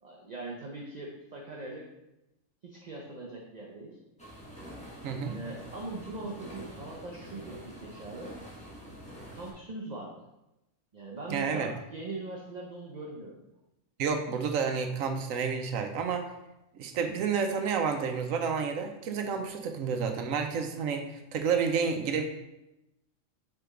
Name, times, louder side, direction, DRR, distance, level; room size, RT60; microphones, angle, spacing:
voice 1, 0.0-1.9 2.6-4.0 5.3-8.3 9.3-10.3 10.9-13.5, right 2 dB, 40° right, -1 dB, 0.7 m, -41 dB
sound 1, 4.2-9.5, equal, 5° left, 1.3 m, -46 dB
voice 2, 5.0-5.4 11.3-11.7 14.0-16.3 16.7-22.2, right 6 dB, 85° right, 6 dB, 1.1 m, -30 dB
6.7 x 3.8 x 3.6 m, 0.92 s
omnidirectional pair, 1.3 m